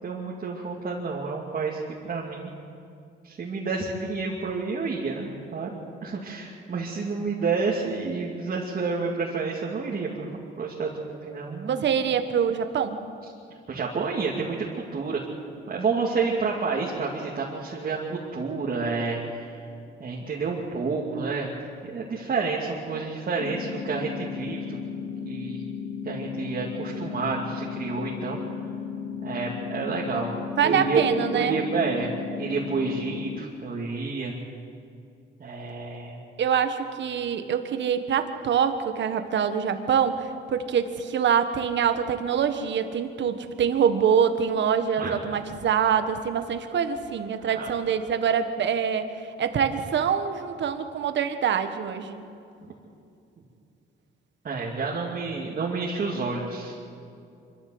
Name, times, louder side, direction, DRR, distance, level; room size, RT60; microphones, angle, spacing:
voice 1, 0.0-2.5 3.2-5.7 6.0-10.3 10.6-11.8 13.7-15.2 15.7-19.6 20.0-24.8 25.2-25.7 26.0-28.4 29.2-30.3 30.6-31.0 31.3-32.1 32.4-34.3 35.4-36.2 45.0-45.1 47.5-47.8 54.4-56.9, right 4 dB, 45° right, -3 dB, 2.6 m, -29 dB
voice 2, 11.7-13.0 22.9-23.0 30.6-31.5 36.4-49.1 49.4-52.2, right 7 dB, 60° right, 8 dB, 1.6 m, -25 dB
sound 1, 23.4-33.4, left 7 dB, 40° left, 1.1 m, -35 dB
25.0 x 14.5 x 8.0 m, 2.5 s
cardioid pair, 105°, 21 cm